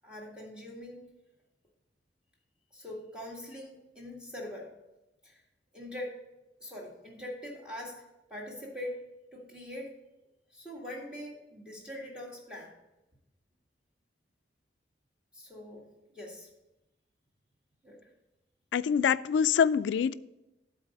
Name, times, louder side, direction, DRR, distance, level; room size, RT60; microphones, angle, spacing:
voice 1, 0.0-1.0 2.7-4.7 5.2-5.4 5.7-6.2 6.6-8.1 8.3-9.0 9.3-9.9 10.5-12.7 15.3-15.8 16.1-16.5 17.8-18.1, left 1 dB, 5° right, -4 dB, 1.8 m, -42 dB
voice 2, 18.7-20.1, left 7 dB, 85° left, 16 dB, 0.3 m, -25 dB
12.0 x 4.1 x 5.3 m, 0.95 s
head